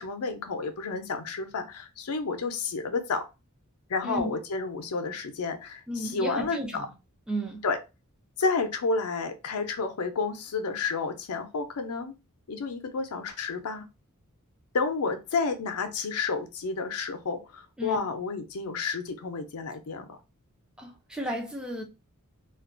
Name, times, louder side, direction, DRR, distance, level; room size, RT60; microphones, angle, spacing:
voice 1, 0.0-3.3 3.9-6.9 7.6-7.8 8.4-12.1 12.5-13.9 14.7-20.2, left 4 dB, 80° left, 0.5 m, -30 dB
voice 2, 4.0-4.3 5.9-6.8 7.3-7.7 17.8-18.0 20.8-21.8, right 1 dB, 5° right, 0.5 m, -33 dB
2.4 x 2.2 x 2.5 m
head